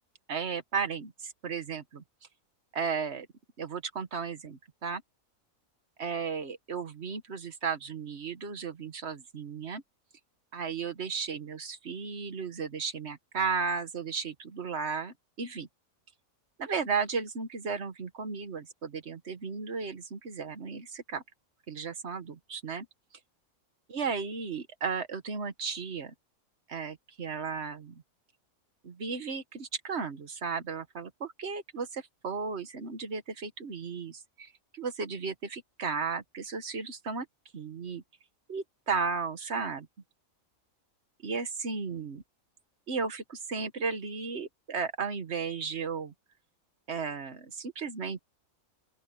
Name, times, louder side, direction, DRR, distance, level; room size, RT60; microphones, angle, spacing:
voice 1, 0.3-2.0 2.7-3.3 3.6-5.0 6.0-9.8 10.5-15.7 16.6-21.2 21.7-22.9 23.9-26.1 26.7-28.0 28.8-37.3 37.5-38.0 38.5-39.9 41.2-42.2 42.9-46.1 46.9-48.2, right 5 dB, 50° right, 1.6 m, -34 dB
open air
omnidirectional pair, 1.4 m